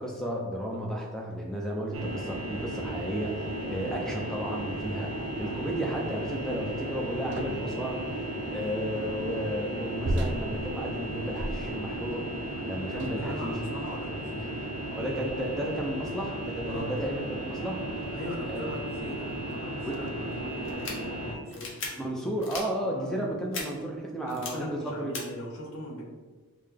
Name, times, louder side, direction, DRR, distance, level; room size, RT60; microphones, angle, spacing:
voice 1, 0.0-8.1 8.5-12.2 12.7-13.6 14.9-17.9 18.5-18.7 19.8-20.0 22.0-25.2, equal, ahead, -1 dB, 0.5 m, -33 dB
sound 1, 1.9-21.4, right 1 dB, 90° right, 0.7 m, -35 dB
sound 2, 7.3-7.8 10.0-12.0 12.9-13.4 14.2-14.4 15.3-15.7, right 1 dB, 50° right, 0.4 m, -34 dB
voice 2, 12.8-14.6 16.7-16.9 18.1-22.2 22.8-23.4 24.2-26.0, left 1 dB, 80° left, -1 dB, 1.0 m, -41 dB
sound 3, 20.7-20.9 21.5-21.9 22.4-22.6 23.5-23.6 24.3-24.5 25.1-25.2, left 4 dB, 55° left, 0.8 m, -36 dB
5.3 x 2.2 x 3.4 m, 1.3 s
head